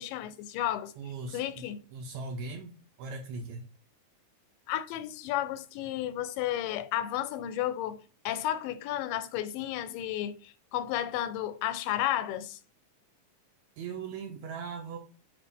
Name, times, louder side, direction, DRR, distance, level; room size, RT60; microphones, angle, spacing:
voice 1, 0.0-0.9 1.3-1.8 4.7-12.6, left 12 dB, 90° left, 2.2 m, -33 dB
voice 2, 1.0-1.6 1.9-2.7 3.0-3.7 13.8-15.0, right 4 dB, 75° right, 1.7 m, -39 dB
8.8 x 3.0 x 3.6 m
omnidirectional pair, 3.8 m